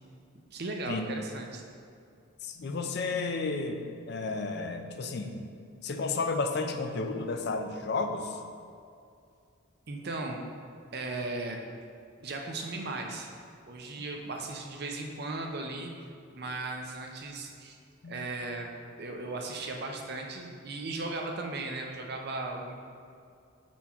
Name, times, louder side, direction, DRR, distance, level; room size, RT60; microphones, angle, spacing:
voice 1, 0.5-1.6 9.9-10.4 10.9-11.6 12.2-13.3 13.7-15.9 16.3-17.8 18.1-18.7 19.0-22.7, right 2 dB, 50° right, 2 dB, 0.6 m, -36 dB
voice 2, 2.4-5.4 5.8-8.4 18.0-18.3, left 3 dB, 55° left, 5 dB, 0.4 m, -32 dB
4.5 x 4.2 x 5.7 m, 2.4 s
head